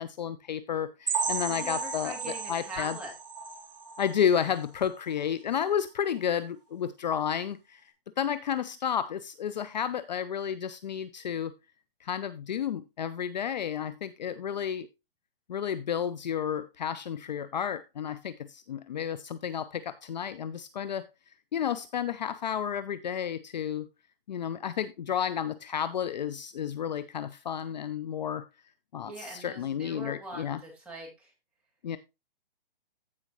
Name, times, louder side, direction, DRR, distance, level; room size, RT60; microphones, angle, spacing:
voice 1, 0.0-3.0 4.0-7.8 8.2-11.5 12.0-14.9 15.5-21.1 21.5-23.9 24.3-28.4 28.9-30.6 31.8-32.0, left 8 dB, 50° left, 0.6 m, -31 dB
sound 1, 1.1-4.7 5.1-5.2 5.6-5.7 6.2-6.3, right 5 dB, 45° right, 2.9 m, -34 dB
voice 2, 1.5-3.1 29.0-31.3, right 1 dB, 5° right, 2.4 m, -42 dB
15.0 x 5.0 x 3.0 m
hypercardioid pair, 165°, 29 cm